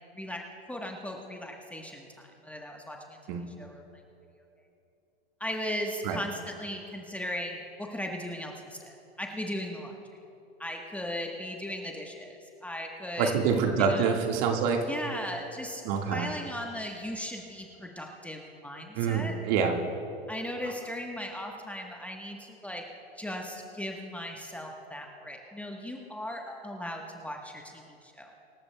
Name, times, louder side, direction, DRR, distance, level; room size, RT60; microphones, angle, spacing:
voice 1, 0.1-3.2 3.6-3.8 5.4-10.0 10.6-13.3 13.8-14.2 14.9-19.4 20.3-22.8 23.2-28.3, left 1 dB, 5° left, 1 dB, 1.2 m, -37 dB
voice 2, 13.2-14.9 15.8-16.3 18.9-19.8, right 6 dB, 45° right, 3 dB, 1.8 m, -26 dB
25.5 x 13.5 x 2.3 m, 2.8 s
hypercardioid pair, 105°, 31 cm